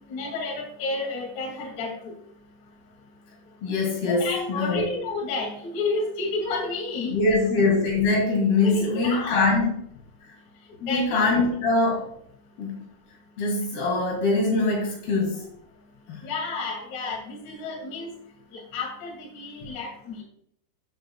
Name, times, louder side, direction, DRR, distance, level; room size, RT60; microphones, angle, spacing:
voice 1, 0.1-1.9 4.0-7.1 8.6-9.5 10.8-11.2 16.2-18.1 18.7-20.2, left 3 dB, 45° left, -1 dB, 2.9 m, -30 dB
voice 2, 3.6-4.9 7.1-9.8 10.8-12.1 12.6-12.8 13.4-15.5 16.1-16.3, left 3 dB, 60° left, -1 dB, 3.7 m, -23 dB
13.0 x 7.8 x 2.3 m, 0.68 s
omnidirectional pair, 5.5 m